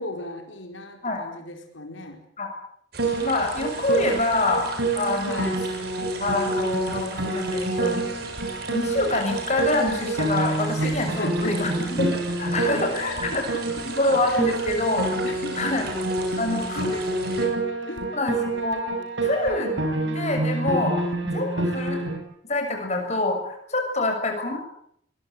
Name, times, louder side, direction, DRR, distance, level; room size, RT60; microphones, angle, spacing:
voice 1, 0.0-2.2 5.2-5.6 10.8-11.6 12.9-13.8 14.2-14.7 15.2-15.7 16.7-17.6 17.9-18.1, left 2 dB, 85° left, 4 dB, 4.8 m, -36 dB
sound 1, 2.9-17.5, right 4 dB, 55° right, 7.4 m, -39 dB
Piano, 3.0-22.2, right 2 dB, 75° right, 6.3 m, -27 dB
voice 2, 3.2-4.7 4.9-5.5 6.2-8.0 8.7-13.4 13.8-15.1 15.5-15.8 16.4-16.9 18.1-18.8 19.2-19.8 20.0-21.0 21.2-22.1 22.5-24.6, left 2 dB, 35° left, 4 dB, 6.6 m, -26 dB
23.5 x 22.0 x 9.2 m, 0.69 s
head